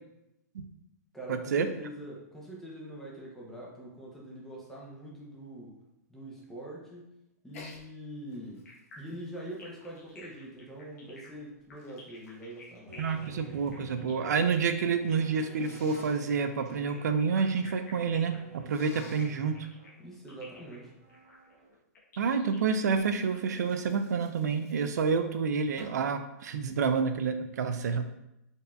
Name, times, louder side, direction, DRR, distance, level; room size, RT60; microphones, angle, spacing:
voice 1, 1.1-5.8 6.1-7.1 7.4-8.7 9.0-13.1 20.0-21.0, right 1 dB, 5° left, -4 dB, 0.6 m, -44 dB
Sneeze, 7.5-7.8 8.3-10.6 11.3-13.8 14.1-14.7 15.6-16.2 18.6-19.4 22.9-25.2 25.8-26.1, left 3 dB, 55° left, 0.7 m, -52 dB
sound 1, 8.7-15.4 16.7-23.4, left 3 dB, 75° left, 1.0 m, -54 dB
sound 2, 12.9-21.7, right 1 dB, 25° right, 0.9 m, -52 dB
voice 2, 13.0-19.6 22.2-28.1, right 5 dB, 80° right, 8 dB, 0.4 m, -28 dB
3.9 x 2.6 x 2.3 m, 0.88 s
hypercardioid pair, 155°, 9 cm